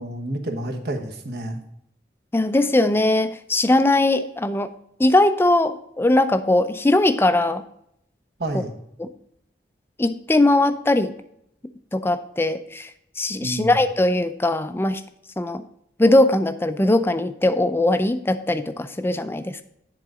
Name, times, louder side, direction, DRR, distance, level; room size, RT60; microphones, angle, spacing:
voice 1, 0.0-1.6 8.4-8.7 13.4-13.8, right 1 dB, 65° right, 3 dB, 1.2 m, -29 dB
voice 2, 2.3-4.7 5.0-7.6 8.5-8.6 9.0-9.1 10.0-11.1 11.9-12.9 13.2-15.0 15.4-15.6 16.0-19.6, left 2 dB, 15° left, 11 dB, 0.4 m, -20 dB
10.5 x 3.9 x 4.8 m, 0.75 s
head